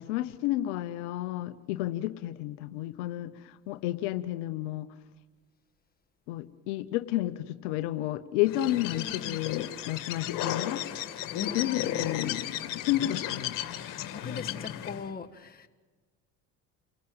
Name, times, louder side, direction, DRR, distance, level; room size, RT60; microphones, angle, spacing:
voice 1, 0.0-4.9 6.3-10.9 11.5-13.6, left 15 dB, 85° left, 12 dB, 0.9 m, -31 dB
Bird, 8.5-15.1, left 11 dB, 70° left, 2.1 m, -34 dB
voice 2, 8.9-9.4 11.4-12.2 13.8-15.7, left 5 dB, 25° left, 5 dB, 1.6 m, -41 dB
29.0 x 17.5 x 8.0 m, 1.4 s
supercardioid pair, 80°, 34 cm